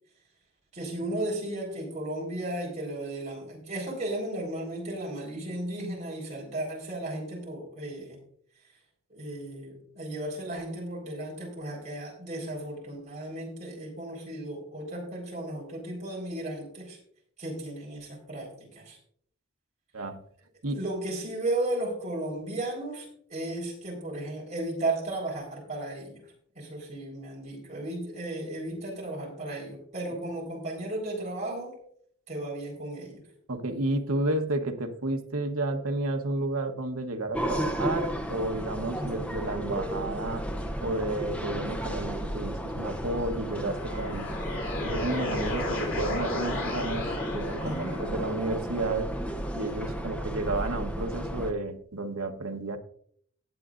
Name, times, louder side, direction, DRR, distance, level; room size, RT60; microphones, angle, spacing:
voice 1, 0.7-8.2 9.1-17.0 17.4-19.0 20.7-31.8 32.3-33.2 39.0-39.2 47.6-48.0, right 1 dB, 30° right, -2 dB, 4.2 m, -35 dB
voice 2, 33.5-40.4 40.8-44.3 44.8-49.1 49.5-52.8, right 2 dB, 75° right, 5 dB, 1.1 m, -31 dB
sound 1, 37.3-51.5, equal, 5° left, 0.7 m, -33 dB
sound 2, 43.4-48.4, left 1 dB, 60° left, 3.1 m, -34 dB
18.5 x 7.9 x 2.5 m, 0.63 s
head